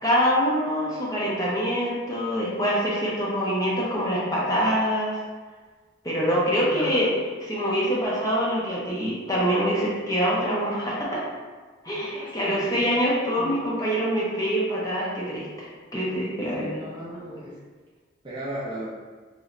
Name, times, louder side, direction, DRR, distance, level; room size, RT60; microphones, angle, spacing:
voice 1, 0.0-5.2 6.0-7.1 7.4-11.2 11.8-16.9, equal, 15° left, -6 dB, 0.6 m, -25 dB
voice 2, 12.0-13.0 13.4-13.5 16.5-17.6 18.2-18.9, equal, 25° right, -6 dB, 0.4 m, -36 dB
3.1 x 3.0 x 2.5 m, 1.4 s
head